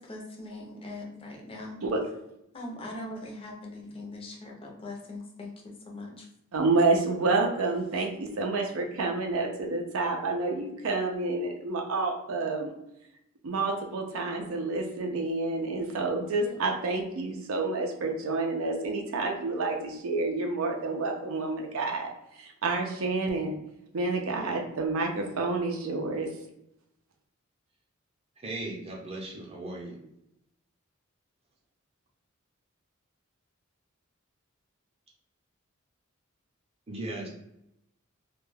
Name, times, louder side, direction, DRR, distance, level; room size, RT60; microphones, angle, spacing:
voice 1, 0.0-1.8 2.5-6.3, left 2 dB, 25° left, 0 dB, 0.5 m, -41 dB
voice 2, 6.5-12.7 13.4-22.1 22.4-23.6 23.9-26.3, right 3 dB, 75° right, 2 dB, 0.5 m, -29 dB
voice 3, 28.4-30.0 36.9-37.3, right 2 dB, 30° right, -3 dB, 0.6 m, -37 dB
2.2 x 2.2 x 3.1 m, 0.82 s
head